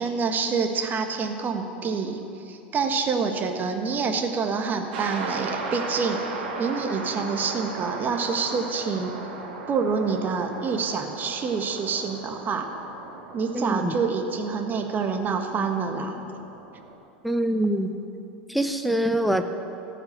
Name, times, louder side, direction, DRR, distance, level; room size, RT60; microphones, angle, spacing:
voice 1, 0.0-9.1 9.7-12.7 13.3-16.2, right 5 dB, 35° right, 5 dB, 1.4 m, -27 dB
sound 1, 4.9-17.0, right 3 dB, 70° right, 2.3 m, -37 dB
voice 2, 13.5-13.9 17.2-18.0 18.5-19.4, right 1 dB, ahead, 7 dB, 0.9 m, -24 dB
14.5 x 5.8 x 9.5 m, 2.8 s
hypercardioid pair, 85°, 6 cm